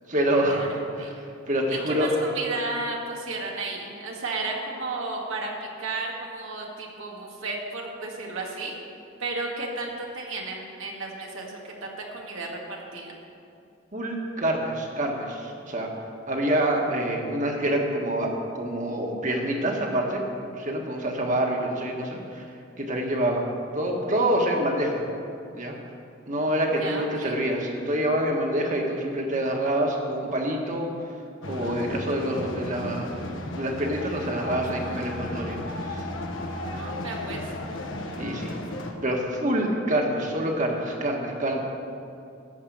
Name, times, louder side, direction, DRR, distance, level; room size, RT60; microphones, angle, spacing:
voice 1, 0.1-1.1 1.5-2.1 13.9-15.9 16.3-20.2 20.5-22.4 22.8-23.5 23.7-25.0 25.5-25.7 26.3-30.9 31.4-33.2 33.5-36.0 38.2-38.5 39.0-41.6, right 1 dB, 40° right, 1 dB, 1.6 m, -26 dB
voice 2, 1.7-8.8 9.2-13.1 26.8-27.4 36.7-37.5, right 3 dB, 90° right, -1 dB, 2.1 m, -33 dB
sound 1, 31.4-38.9, left 1 dB, 70° left, 1.3 m, -34 dB
14.0 x 5.5 x 8.6 m, 2.6 s
head